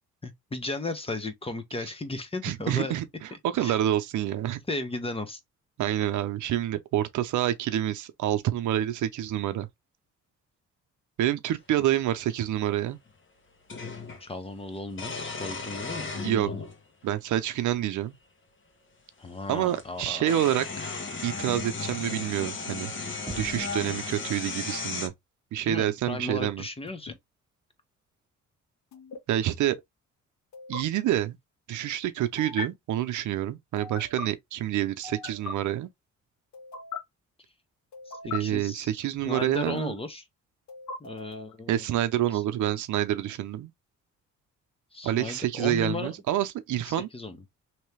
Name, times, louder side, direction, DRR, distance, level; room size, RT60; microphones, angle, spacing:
voice 1, 0.2-2.9 3.3-3.8 4.7-5.4 14.2-16.6 19.2-20.3 25.6-27.2 38.1-38.9 39.2-40.2 41.0-41.8 42.3-42.4 44.9-46.1 46.8-47.4, left 2 dB, 20° left, 0.9 m, -35 dB
voice 2, 2.4-3.0 3.4-4.6 5.8-9.7 11.2-13.0 16.2-16.5 17.0-18.1 19.5-20.9 21.2-22.9 23.4-25.1 25.5-26.6 29.3-29.8 30.7-31.4 31.7-35.9 38.3-39.9 41.7-43.7 45.0-47.1, right 12 dB, 75° right, 0.7 m, -27 dB
sound 1, 12.0-12.1 13.7-14.2 14.9-16.8 17.7-17.8 19.3-19.4 19.7-25.1, left 4 dB, 40° left, 1.4 m, -35 dB
Knock, 23.3-23.9, right 2 dB, 15° right, 0.6 m, -40 dB
sound 2, 26.9-27.1 28.9-29.2 30.5-30.8 32.4-32.7 33.8-34.3 35.0-35.5 36.5-37.0 37.9-38.4 39.4-40.0 40.7-41.5, left 4 dB, 65° left, 1.5 m, -39 dB
3.1 x 2.9 x 3.2 m
cardioid pair, 90°, 30 cm